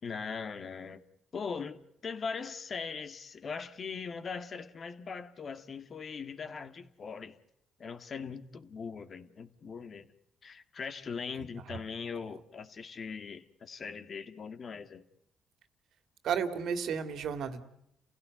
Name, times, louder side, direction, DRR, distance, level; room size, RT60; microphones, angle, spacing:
voice 1, 0.0-1.0 1.3-7.4 7.8-10.1 10.4-15.0, left 5 dB, 45° left, 11 dB, 2.0 m, -40 dB
voice 2, 16.2-17.6, right 7 dB, 75° right, 11 dB, 2.4 m, -33 dB
29.0 x 16.5 x 9.5 m, 0.79 s
cardioid pair, 90°, 0 cm